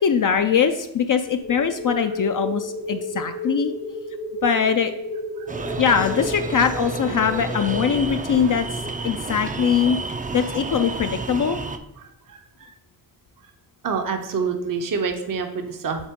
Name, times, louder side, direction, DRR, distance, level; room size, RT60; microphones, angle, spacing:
voice 1, 0.0-3.7 4.4-4.9 5.8-8.6 9.0-10.0 10.3-11.6, left 7 dB, 55° left, 7 dB, 0.4 m, -21 dB
sound 1, 1.4-7.9, left 1 dB, 75° left, 2.1 m, -32 dB
sound 2, 5.5-11.8, right 3 dB, 20° right, 0.4 m, -31 dB
voice 2, 12.0-12.7 13.8-16.1, right 5 dB, 55° right, 5 dB, 0.7 m, -28 dB
7.3 x 3.9 x 3.6 m, 0.90 s
wide cardioid pair, 80°, 39 cm